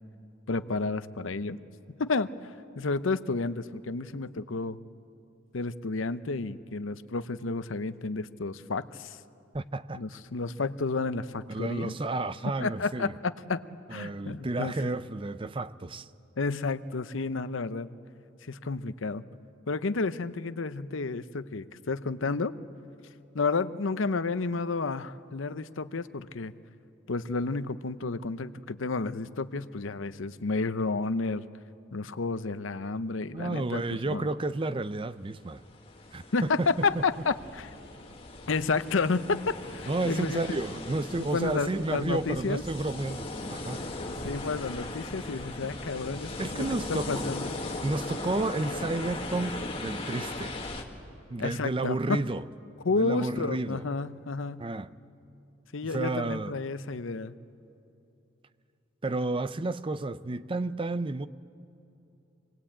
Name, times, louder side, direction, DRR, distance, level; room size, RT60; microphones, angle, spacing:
voice 1, 0.5-1.6 2.0-4.8 5.5-9.2 9.9-11.9 12.6-13.6 13.9-14.7 16.4-17.9 18.4-19.2 19.7-22.5 23.3-26.5 27.1-31.4 31.9-34.3 36.3-37.7 38.5-40.4 41.3-42.6 44.2-47.5 51.4-52.2 52.8-54.7 55.7-57.4, left 3 dB, 75° left, 0.7 m, -31 dB
voice 2, 9.5-10.0 11.5-13.1 13.9-16.1 33.3-35.6 36.1-36.7 36.9-37.0 39.9-43.8 46.4-47.2 47.8-50.6 51.3-52.4 52.9-53.8 54.6-54.9 55.8-56.5 59.0-61.3, right 2 dB, 25° right, 0.5 m, -31 dB
sound 1, 35.5-50.8, left 2 dB, 30° left, 1.8 m, -38 dB
26.0 x 20.0 x 8.8 m
head